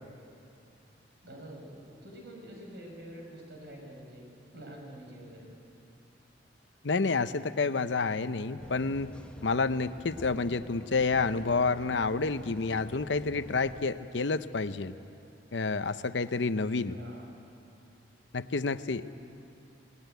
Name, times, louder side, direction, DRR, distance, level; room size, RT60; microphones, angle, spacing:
voice 1, 1.2-4.2 4.5-5.6 16.9-17.3, right 1 dB, 65° right, 0 dB, 6.2 m, -47 dB
voice 2, 6.8-9.1 9.4-14.9 15.5-17.0 18.3-19.1, left 4 dB, 80° left, 12 dB, 0.8 m, -29 dB
sound 1, 8.6-13.8, equal, 5° left, 1.1 m, -48 dB
26.5 x 19.0 x 9.2 m, 2.7 s
head